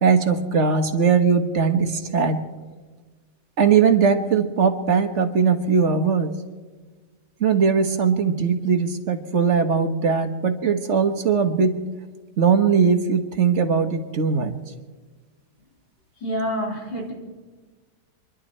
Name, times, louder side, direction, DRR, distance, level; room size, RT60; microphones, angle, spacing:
voice 1, 0.0-2.4 3.6-6.3 7.4-11.7 12.4-14.5, right 6 dB, 45° right, 6 dB, 1.3 m, -20 dB
voice 2, 16.2-17.1, equal, 80° left, -2 dB, 4.2 m, -27 dB
27.0 x 11.5 x 4.4 m, 1.4 s
omnidirectional pair, 1.9 m